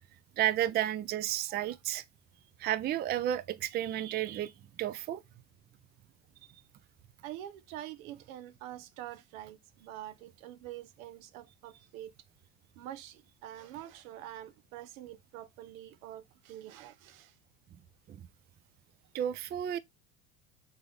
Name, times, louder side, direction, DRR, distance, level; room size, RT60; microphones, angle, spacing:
voice 1, 0.4-2.0 2.6-4.5 4.8-5.2 18.1-18.3 19.1-19.8, right 12 dB, 25° right, 0.4 m, -32 dB
voice 2, 7.2-12.1 12.8-17.4, right 12 dB, 80° right, 0.7 m, -46 dB
3.5 x 3.5 x 3.7 m
supercardioid pair, 95°, 40 cm